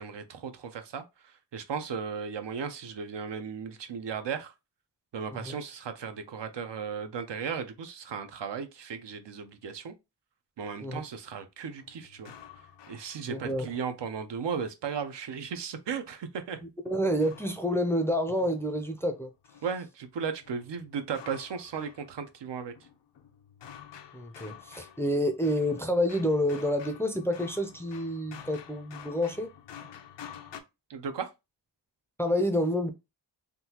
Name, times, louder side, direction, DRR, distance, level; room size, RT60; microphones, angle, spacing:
voice 1, 0.0-4.5 5.1-9.9 10.6-12.3 12.9-16.6 19.6-22.7 30.9-31.3, right 6 dB, 75° right, 0.6 m, -36 dB
sound 1, 11.8-13.7 16.8-19.8 20.4-22.4 22.7-30.6, left 9 dB, 75° left, 0.5 m, -50 dB
voice 2, 13.3-13.7 16.6-19.3 24.1-29.5 32.2-32.9, equal, 5° left, 0.4 m, -28 dB
3.7 x 2.3 x 2.8 m
wide cardioid pair, 100°, 43 cm